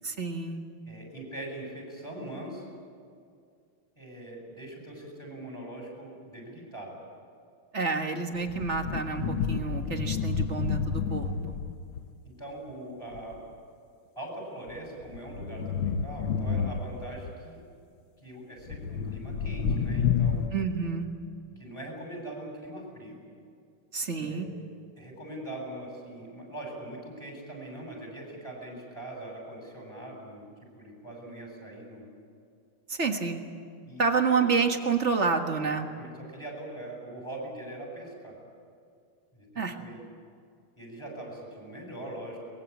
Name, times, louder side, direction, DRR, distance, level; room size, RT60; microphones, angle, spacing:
voice 1, 0.0-0.6 7.7-11.3 20.5-21.1 23.9-24.5 32.9-33.4 34.0-35.9 39.6-39.8, right 5 dB, 35° right, 4 dB, 1.9 m, -28 dB
voice 2, 0.9-2.7 4.0-7.0 12.2-13.4 14.2-17.6 18.2-20.4 21.6-23.2 24.1-24.6 25.0-30.5 30.7-32.0 33.9-34.1 35.6-38.4 39.3-40.0 40.8-42.4, right 1 dB, 10° left, -1 dB, 7.7 m, -42 dB
sound 1, 8.4-12.1 13.1-13.4 14.7-17.3 18.7-20.5, left 6 dB, 80° left, 1.9 m, -30 dB
23.5 x 21.5 x 8.7 m, 2.3 s
omnidirectional pair, 2.3 m